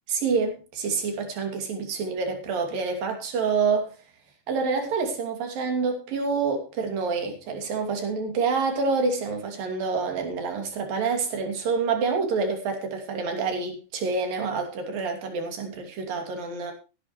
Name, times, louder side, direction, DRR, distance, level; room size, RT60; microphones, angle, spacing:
voice 1, 0.1-3.9 4.5-16.7, right 4 dB, 70° right, 4.4 m, -27 dB
16.5 x 11.5 x 3.2 m
omnidirectional pair, 4.1 m